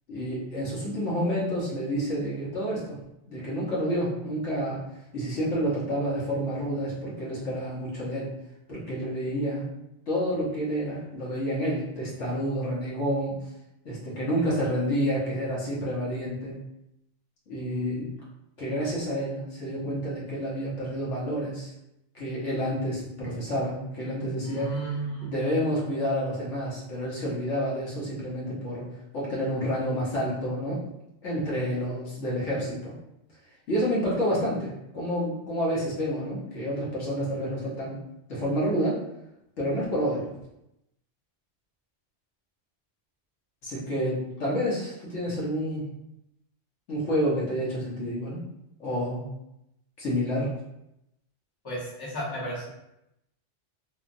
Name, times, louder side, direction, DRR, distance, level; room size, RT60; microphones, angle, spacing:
voice 1, 0.1-3.0 3.3-4.8 5.1-8.3 8.7-9.7 10.1-13.4 13.8-16.6 17.5-18.1 18.6-21.7 22.1-24.8 25.2-28.9 29.1-30.8 31.2-33.0 33.7-38.0 38.3-39.0 39.6-40.3 43.6-45.8 46.9-48.4 48.8-49.2 50.0-50.5, equal, 80° left, -6 dB, 1.3 m, -29 dB
voice 2, 24.4-25.3 51.6-52.7, right 1 dB, 20° left, -7 dB, 0.8 m, -33 dB
3.2 x 2.3 x 2.5 m, 0.84 s
omnidirectional pair, 1.2 m